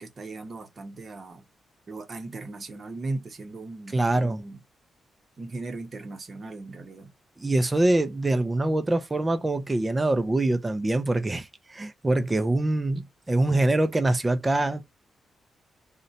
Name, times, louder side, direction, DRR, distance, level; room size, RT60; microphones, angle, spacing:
voice 1, 0.0-1.4 1.9-4.6 5.4-7.1, right 2 dB, 35° right, 0.8 m, -38 dB
voice 2, 3.9-4.4 7.4-14.8, right 2 dB, 15° right, 0.4 m, -24 dB
2.6 x 2.1 x 3.9 m
wide cardioid pair, 145°, 0 cm